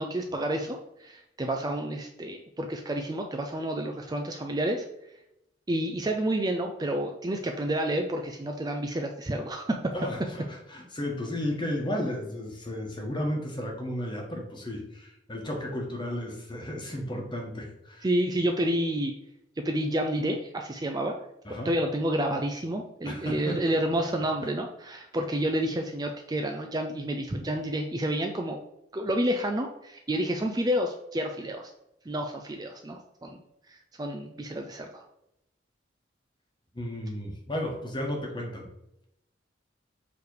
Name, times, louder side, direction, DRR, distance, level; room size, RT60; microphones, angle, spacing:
voice 1, 0.0-4.9 5.7-9.9 18.0-19.1 19.6-21.1 21.6-28.6 28.9-31.7 32.1-33.4 33.7-35.0, right 1 dB, 20° right, 3 dB, 0.4 m, -29 dB
voice 2, 9.9-18.1 21.4-21.7 23.0-23.6 36.7-38.7, left 1 dB, 25° left, 1 dB, 1.3 m, -33 dB
7.1 x 3.2 x 4.7 m, 0.82 s
head